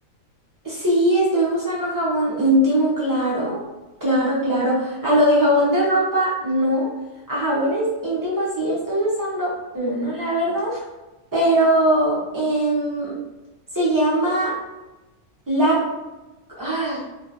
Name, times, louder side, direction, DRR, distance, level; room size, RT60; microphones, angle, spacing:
voice 1, 0.6-3.6 4.0-6.9 7.3-10.8 11.3-13.2 13.7-14.5 15.5-15.9 16.6-17.0, right 1 dB, 20° right, -7 dB, 0.6 m, -21 dB
2.9 x 2.3 x 2.6 m, 1.1 s
omnidirectional pair, 1.4 m